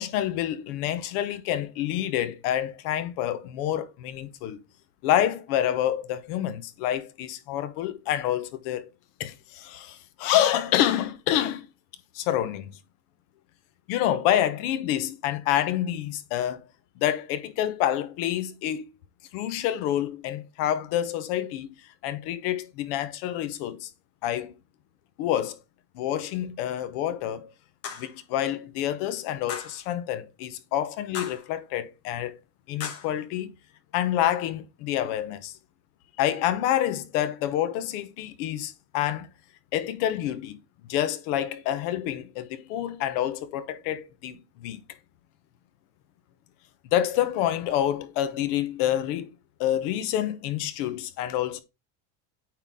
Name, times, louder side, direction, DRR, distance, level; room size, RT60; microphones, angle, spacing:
voice 1, 0.0-4.6 5.0-8.9 9.2-11.7 12.1-12.8 13.9-16.6 17.0-18.8 19.3-21.7 22.0-23.9 24.2-24.5 25.2-25.6 25.9-27.5 28.0-32.4 32.7-33.5 33.9-35.5 36.2-39.3 39.7-40.6 40.9-44.8 46.9-49.3 49.6-51.6, left 11 dB, 80° left, 1.1 m, -27 dB
sound 1, 27.8-28.2 29.5-29.8 31.1-31.5 32.8-33.1, left 7 dB, 30° left, 1.1 m, -36 dB
8.9 x 3.9 x 3.6 m
cardioid pair, 165°, 45 cm